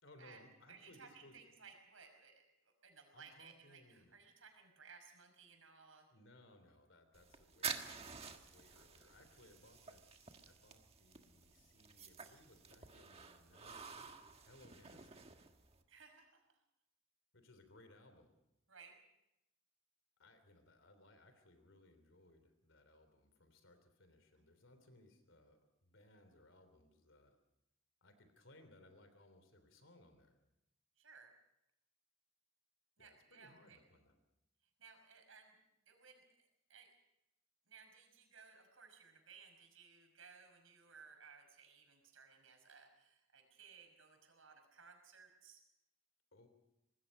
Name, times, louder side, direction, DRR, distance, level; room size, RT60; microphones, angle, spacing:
voice 1, 0.0-1.4 3.1-4.1 6.1-15.3 17.3-18.3 20.2-27.4 28.0-30.4 33.0-34.2 46.3-46.5, left 1 dB, 75° left, 8 dB, 3.3 m, -64 dB
voice 2, 0.7-6.1 15.9-16.4 18.7-19.0 24.3-24.4 31.0-31.3 33.0-33.8 34.8-35.6 35.9-36.9 37.7-45.6, right 5 dB, 85° right, 4 dB, 5.8 m, -60 dB
sound 1, 7.1-15.8, right 6 dB, 30° right, 1.5 m, -50 dB
25.5 x 20.0 x 5.5 m, 0.87 s
head